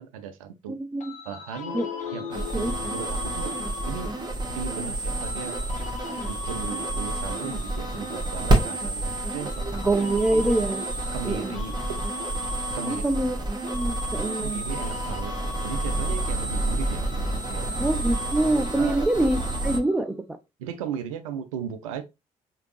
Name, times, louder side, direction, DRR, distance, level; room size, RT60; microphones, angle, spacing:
voice 1, 0.0-0.8 1.3-1.8 2.1-4.1 4.5-5.6 6.3-9.8 10.3-10.4 11.1-12.0 12.7-13.0 14.4-15.3 15.6-17.0 17.5-17.8 18.7-19.1 20.6-22.0, right 8 dB, 75° right, 0.5 m, -36 dB
voice 2, 0.7-1.1 1.7-1.9 2.5-2.7 9.6-10.9 11.2-11.5 12.9-13.4 13.6-14.6 17.8-20.3, right 2 dB, 5° right, 0.5 m, -25 dB
sound 1, 1.0-4.4 5.2-9.0 9.5-13.4 13.7-20.0, left 7 dB, 45° left, 1.2 m, -41 dB
sound 2, 1.6-5.0, left 7 dB, 90° left, 0.6 m, -38 dB
sound 3, 2.3-19.8, right 2 dB, 25° right, 1.5 m, -29 dB
4.9 x 2.8 x 3.1 m
figure-of-eight pair, 45°, 18 cm